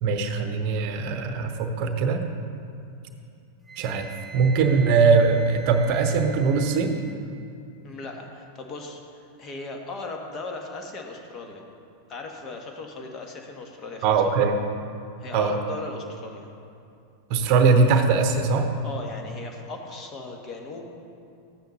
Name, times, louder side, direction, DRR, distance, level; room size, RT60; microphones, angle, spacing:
voice 1, 0.0-2.2 3.8-4.1 4.3-7.0 14.0-14.6 15.3-15.5 17.3-18.7, right 5 dB, 45° right, 6 dB, 0.9 m, -21 dB
Wind instrument woodwind instrument, 3.7-7.2, right 4 dB, ahead, 0.7 m, -44 dB
voice 2, 7.8-11.6 12.1-14.0 15.2-16.5 18.8-20.9, left 3 dB, 30° left, 2 dB, 1.3 m, -37 dB
13.0 x 9.2 x 3.1 m, 2.6 s
figure-of-eight pair, 90°, 0 cm